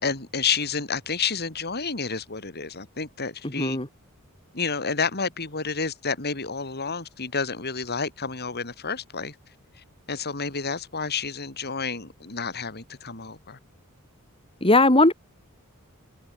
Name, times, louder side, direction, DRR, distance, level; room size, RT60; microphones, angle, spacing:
voice 1, 0.0-3.8 4.5-9.4 9.8-13.6, left 5 dB, 45° left, 3.8 m, -30 dB
voice 2, 3.6-3.9 14.6-15.1, left 2 dB, 25° left, 3.7 m, -18 dB
head